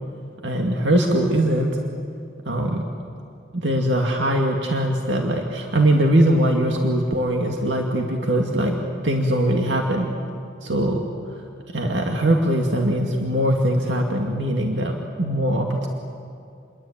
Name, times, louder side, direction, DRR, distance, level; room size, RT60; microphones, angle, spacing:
voice 1, 0.4-1.8 2.5-2.9 3.5-8.8 9.0-10.1 10.6-11.0 11.7-15.9, right 1 dB, 80° right, 1 dB, 2.2 m, -21 dB
29.0 x 22.5 x 8.8 m, 2.5 s
head